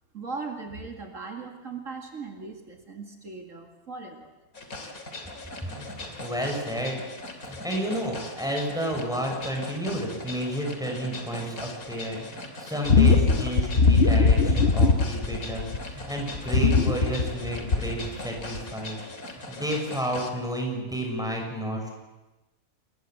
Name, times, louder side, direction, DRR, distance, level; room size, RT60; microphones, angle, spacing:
voice 1, 0.1-4.3, right 4 dB, 60° right, 3 dB, 2.5 m, -38 dB
sound 1, 4.5-20.3, left 2 dB, 75° left, 3.4 m, -40 dB
voice 2, 5.6-7.0 7.4-21.9, equal, ahead, 1 dB, 6.6 m, -31 dB
sound 2, 12.9-15.9 16.3-18.1 18.5-18.7, left 4 dB, 50° left, 1.6 m, -20 dB
28.5 x 21.5 x 7.8 m, 1.1 s
omnidirectional pair, 1.5 m